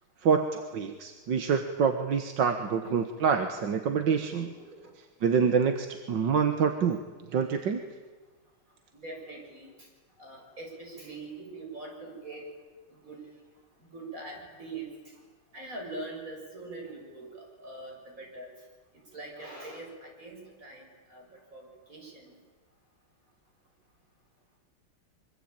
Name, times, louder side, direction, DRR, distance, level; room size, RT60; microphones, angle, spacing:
voice 1, 0.2-4.5 5.2-7.0 7.3-7.8, right 6 dB, 60° right, 7 dB, 2.0 m, -26 dB
voice 2, 4.1-4.8 8.9-9.7 10.2-12.5 12.9-13.2 13.9-14.9 15.5-18.5 19.1-21.3 21.5-22.3, right 2 dB, 40° right, 0 dB, 7.6 m, -43 dB
25.0 x 24.5 x 9.0 m, 1.3 s
omnidirectional pair, 2.2 m